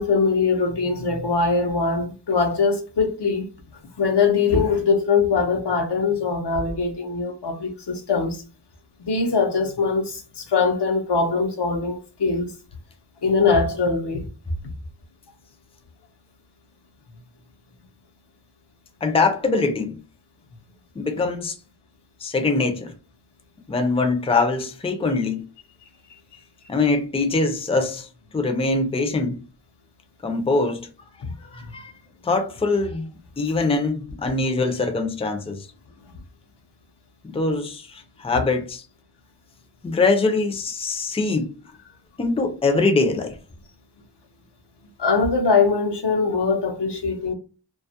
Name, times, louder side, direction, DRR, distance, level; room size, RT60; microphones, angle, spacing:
voice 1, 0.0-3.5 4.0-8.4 9.0-12.5 13.2-14.2 31.2-31.3 31.7-31.8 45.0-47.3, left 4 dB, 75° left, 0.6 m, -22 dB
voice 2, 19.0-20.0 21.0-21.6 22.2-22.9 23.7-25.4 26.7-28.1 28.3-29.4 30.2-30.9 31.5-31.9 32.2-33.1 33.4-35.7 37.2-38.8 39.8-41.5 42.2-43.3, left 3 dB, 15° left, 0.4 m, -23 dB
2.2 x 2.0 x 2.7 m
wide cardioid pair, 45°, 41 cm